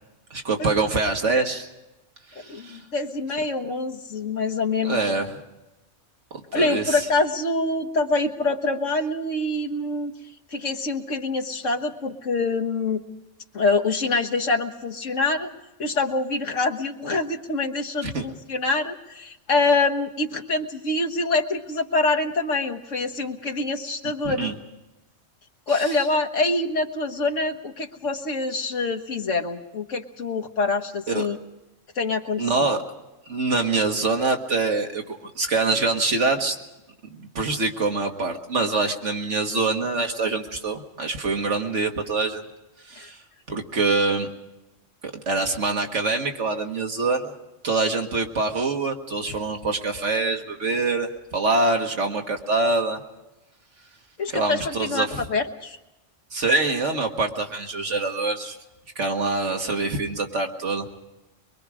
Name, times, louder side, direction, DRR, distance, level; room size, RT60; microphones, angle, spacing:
voice 1, 0.3-1.7 2.4-2.8 4.8-5.3 6.6-7.1 18.0-18.2 24.2-24.6 31.1-31.3 32.4-32.8 33.3-36.6 37.1-42.4 42.9-43.2 43.5-44.3 45.0-47.4 47.6-53.0 54.3-55.2 56.3-58.6 59.0-60.9, right 3 dB, 70° right, 3 dB, 2.1 m, -25 dB
voice 2, 2.5-5.1 6.5-10.1 10.5-13.0 13.5-15.5 15.8-24.5 25.7-31.4 32.0-32.7 43.0-43.1 54.2-55.8, left 3 dB, 80° left, 3 dB, 1.8 m, -25 dB
23.5 x 23.5 x 5.0 m, 0.99 s
omnidirectional pair, 1.3 m